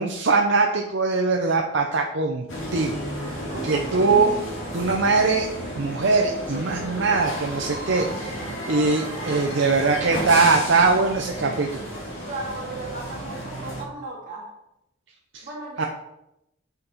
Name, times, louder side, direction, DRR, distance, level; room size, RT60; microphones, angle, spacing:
voice 1, 0.0-2.5 2.7-3.1 3.6-4.3 4.7-5.5 5.8-8.4 8.7-11.8 15.3-15.4 15.8-15.9, right 4 dB, 65° right, 2 dB, 0.7 m, -21 dB
sound 1, 2.5-13.8, equal, 85° left, 1.9 m, -33 dB
voice 2, 3.2-4.0 12.3-14.5 15.4-15.9, right 2 dB, 45° right, -3 dB, 2.5 m, -36 dB
8.3 x 5.3 x 4.1 m, 0.86 s
head